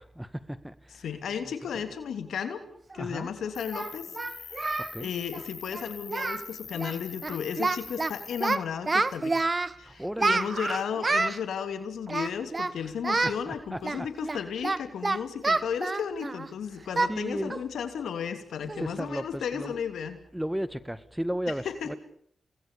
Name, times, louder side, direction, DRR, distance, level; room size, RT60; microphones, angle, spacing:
voice 1, 0.0-1.0 1.7-1.8 3.0-3.3 4.8-5.1 9.8-10.5 13.5-14.4 17.1-17.5 18.6-19.8 20.3-22.0, equal, 5° right, 15 dB, 1.8 m, -35 dB
voice 2, 1.0-2.6 2.9-9.5 9.8-20.2 21.8-21.9, left 7 dB, 80° left, 9 dB, 3.0 m, -34 dB
Singing, 2.9-3.0 3.7-4.9 5.2-5.4 5.7-5.8 6.1-6.5 6.7-7.0 7.2-8.1 8.4-9.7 10.2-11.4 12.1-12.7 13.0-13.4 13.8-16.5 17.0-17.2 17.5-17.7 18.1-18.2 18.7-19.0, right 3 dB, 40° right, 1.3 m, -28 dB
Cricket, 3.5-8.5, left 6 dB, 65° left, 2.2 m, -44 dB
29.0 x 20.5 x 7.0 m, 0.65 s
supercardioid pair, 45°, 0 cm